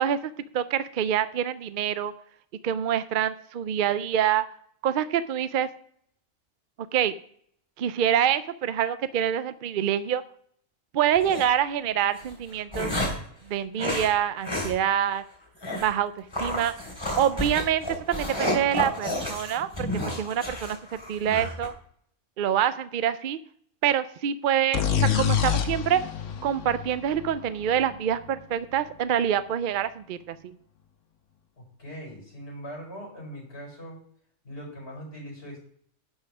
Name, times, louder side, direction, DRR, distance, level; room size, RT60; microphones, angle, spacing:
voice 1, 0.0-2.1 2.6-4.4 4.8-5.7 6.9-7.1 7.8-10.2 10.9-12.9 13.5-15.2 15.8-16.7 17.2-19.9 20.2-21.7 22.4-23.4 23.8-26.0 26.4-30.4, right 9 dB, 60° right, 13 dB, 0.6 m, -26 dB
sound 1, 11.1-11.4 12.2-13.3 13.8-14.1 14.4-14.7 15.0-15.1 15.6-15.9 16.3-21.7, left 1 dB, 20° left, 2.9 m, -31 dB
sound 2, 24.7-28.4, left 8 dB, 80° left, 1.3 m, -27 dB
voice 2, 31.6-34.0 34.4-35.7, equal, 55° left, -2 dB, 5.3 m, -41 dB
11.0 x 5.6 x 6.0 m, 0.64 s
omnidirectional pair, 1.3 m